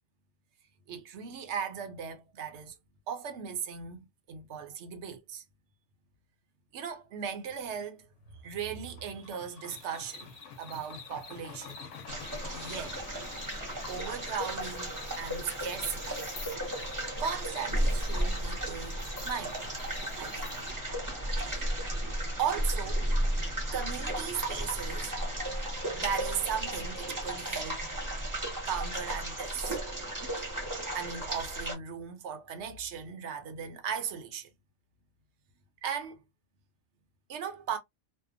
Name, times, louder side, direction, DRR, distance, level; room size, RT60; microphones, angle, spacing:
voice 1, 0.9-2.8 3.1-5.4 6.7-8.1 8.4-11.9 12.4-13.1 13.9-16.2 17.2-19.6 20.2-20.5 21.4-21.7 22.4-23.1 23.7-25.7 26.0-27.8 28.7-29.8 30.9-34.5 35.8-36.2 37.3-37.8, right 7 dB, 70° right, 0.9 m, -37 dB
sound 1, 8.3-27.7, left 6 dB, 80° left, 0.9 m, -51 dB
sound 2, 9.7-20.7, left 3 dB, 55° left, 0.9 m, -49 dB
sound 3, 12.1-31.7, right 1 dB, 20° right, 0.8 m, -34 dB
2.7 x 2.1 x 2.4 m
omnidirectional pair, 1.3 m